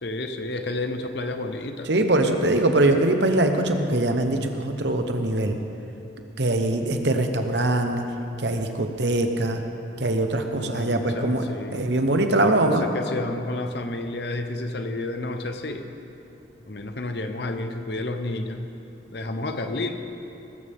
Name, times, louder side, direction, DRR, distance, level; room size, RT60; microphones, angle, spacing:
voice 1, 0.0-1.9 10.6-11.9 12.4-15.9 16.6-18.7 19.1-19.9, left 2 dB, 60° left, 6 dB, 0.9 m, -31 dB
voice 2, 1.9-5.6 6.4-8.0 8.4-9.6 10.0-12.9, right 1 dB, 65° right, 5 dB, 1.0 m, -22 dB
19.0 x 13.5 x 3.7 m, 2.8 s
head